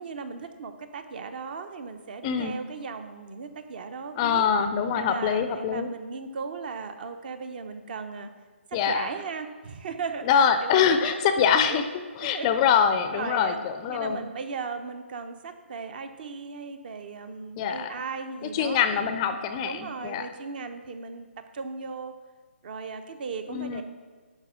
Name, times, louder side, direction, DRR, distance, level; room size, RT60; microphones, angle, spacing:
voice 1, 0.0-4.4 5.0-8.3 8.7-11.8 12.2-12.5 13.1-13.6 13.9-19.2 19.6-21.3 21.5-22.1 22.6-23.8, right 5 dB, 45° right, 9 dB, 0.9 m, -37 dB
voice 2, 2.2-2.6 4.2-5.9 8.7-9.1 10.3-11.8 12.2-14.3 17.6-17.9 18.5-20.3 23.5-23.8, left 7 dB, 25° left, 9 dB, 0.5 m, -24 dB
10.5 x 4.3 x 6.3 m, 1.5 s
figure-of-eight pair, 145°, 7 cm